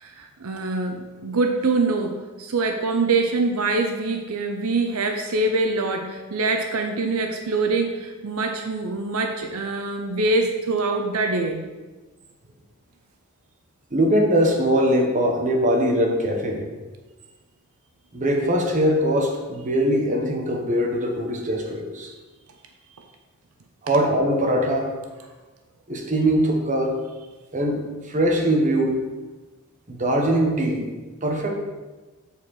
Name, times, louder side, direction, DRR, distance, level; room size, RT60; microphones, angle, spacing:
voice 1, 0.0-11.7, right 3 dB, 80° right, 4 dB, 0.7 m, -24 dB
voice 2, 13.9-16.6 18.1-22.1 23.8-24.9 25.9-27.0 27.5-29.0 29.9-30.9 31.2-31.5, equal, 35° right, 1 dB, 1.1 m, -21 dB
8.3 x 4.4 x 4.7 m, 1.2 s
head